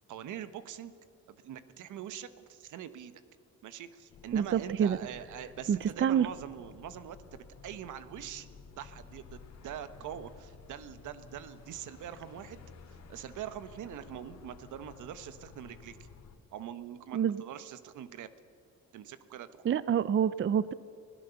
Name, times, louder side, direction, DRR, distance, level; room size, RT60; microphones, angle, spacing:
voice 1, 0.1-0.9 1.3-3.2 3.6-8.5 8.8-12.6 12.9-16.1 16.5-18.3 18.9-19.8, right 10 dB, 80° right, 13 dB, 1.2 m, -44 dB
sound 1, 4.1-16.4, left 5 dB, 60° left, 2.4 m, -53 dB
voice 2, 4.3-5.0 5.7-6.3 17.1-17.4 19.6-20.7, right 8 dB, 40° right, 17 dB, 0.6 m, -27 dB
25.0 x 17.0 x 7.0 m, 2.5 s
cardioid pair, 90°, 30 cm